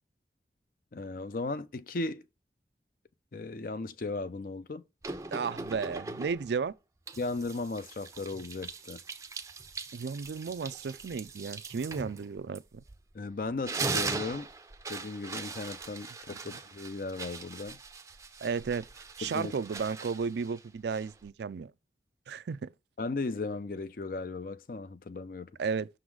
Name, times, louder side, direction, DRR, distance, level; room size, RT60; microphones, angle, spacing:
voice 1, 0.9-2.2 3.3-4.8 7.2-9.0 13.1-14.5 14.9-17.8 19.2-19.5 23.0-25.5, left 3 dB, 50° left, 0.5 m, -36 dB
sound 1, 5.0-6.6 7.1-13.1 13.5-21.3, right 4 dB, 15° right, 0.5 m, -40 dB
voice 2, 5.3-6.7 9.9-12.8 18.4-18.9 19.2-21.7 22.3-22.7 25.6-25.9, right 5 dB, 75° right, 0.4 m, -33 dB
6.1 x 3.9 x 4.7 m
head